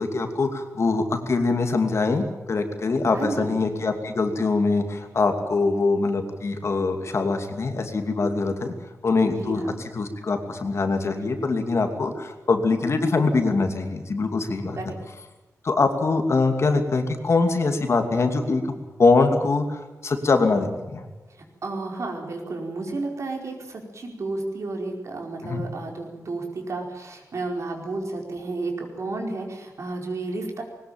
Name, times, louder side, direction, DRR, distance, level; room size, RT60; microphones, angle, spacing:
voice 1, 0.0-8.7 9.0-9.6 9.9-14.8 15.6-21.0 25.4-25.6, left 3 dB, 50° left, 6 dB, 2.6 m, -23 dB
voice 2, 3.1-3.6 9.4-9.8 14.8-14.9 21.6-30.6, right 3 dB, 55° right, 2 dB, 4.8 m, -32 dB
21.0 x 19.5 x 9.0 m, 1.1 s
wide cardioid pair, 175°, 6 cm